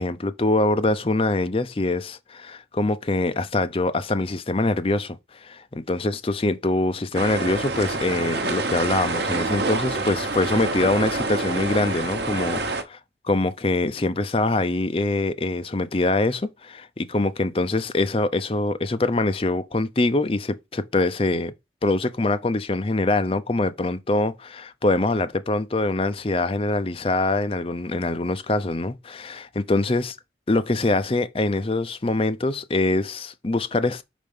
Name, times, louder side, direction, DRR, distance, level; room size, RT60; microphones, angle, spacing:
voice 1, 0.0-13.0 13.2-21.5 21.8-30.2 30.5-34.0, left 2 dB, 30° left, 0.6 m, -24 dB
sound 1, 7.1-12.8, right 3 dB, 75° right, 1.0 m, -27 dB
5.2 x 4.3 x 5.4 m
head